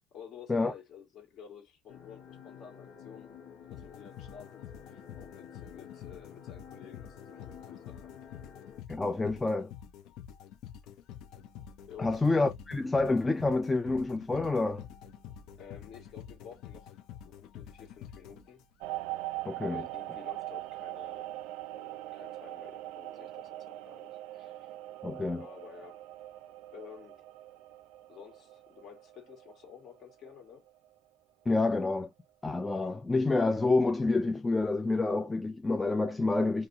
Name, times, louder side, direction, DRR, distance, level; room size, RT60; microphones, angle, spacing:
voice 1, 0.1-3.4 3.7-8.1 11.9-12.2 15.6-17.0 17.2-18.6 19.6-21.4 21.7-24.8 25.4-26.1 26.7-27.2 28.1-30.7, left 7 dB, 50° left, 1.6 m, -52 dB
sound 1, 1.9-8.8, left 8 dB, 85° left, 1.0 m, -51 dB
sound 2, 3.7-19.0, left 9 dB, 65° left, 0.5 m, -48 dB
voice 2, 8.9-9.7 12.0-14.8 19.5-19.8 25.0-25.5 31.5-32.1 32.4-36.7, left 3 dB, 15° left, 0.3 m, -28 dB
sound 3, 18.8-30.1 30.5-30.9, right 16 dB, 80° right, 0.3 m, -42 dB
2.6 x 2.4 x 2.6 m
cardioid pair, 125°, 0 cm